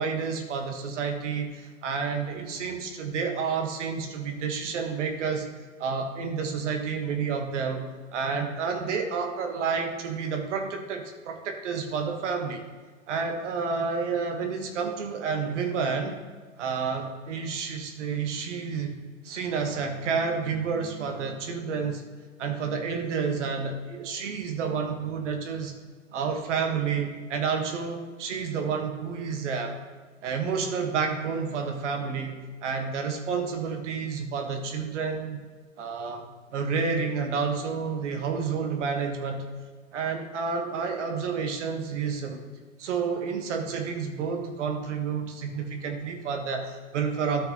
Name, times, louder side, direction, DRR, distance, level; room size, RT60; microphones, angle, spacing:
voice 1, 0.0-5.5 5.8-7.8 8.1-12.6 13.1-16.2 16.6-19.0 19.2-22.0 22.4-25.7 26.1-29.8 30.2-32.3 32.6-35.4 35.8-39.4 39.9-42.4 42.8-47.5, right 5 dB, 65° right, 4 dB, 1.4 m, -30 dB
13.0 x 5.9 x 2.9 m, 1.4 s
hypercardioid pair, 110°, 39 cm